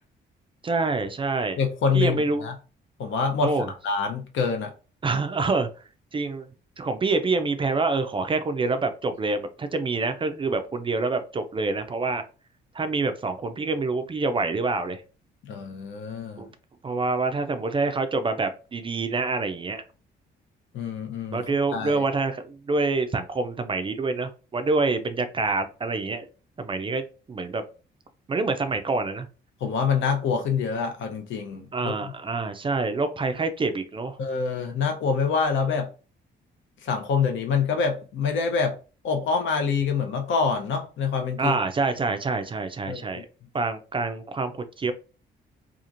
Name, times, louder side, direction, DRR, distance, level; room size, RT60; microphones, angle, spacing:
voice 1, 0.6-1.6 1.9-2.5 3.4-3.7 5.0-5.7 6.1-6.5 6.8-12.2 12.7-15.0 16.4-16.5 16.8-19.8 21.3-26.3 26.6-27.0 27.3-27.6 28.3-29.3 31.7-34.2 41.4-43.3 43.5-44.9, right 3 dB, 25° right, 0.4 m, -26 dB
voice 2, 1.6-2.5 3.0-3.5 3.8-4.7 15.5-16.4 20.7-21.4 21.7-22.0 29.6-31.9 34.2-35.9 36.8-38.8 39.0-41.6 42.9-43.2, left 5 dB, 70° left, 0.7 m, -26 dB
2.9 x 2.4 x 2.5 m
cardioid pair, 90°, 20 cm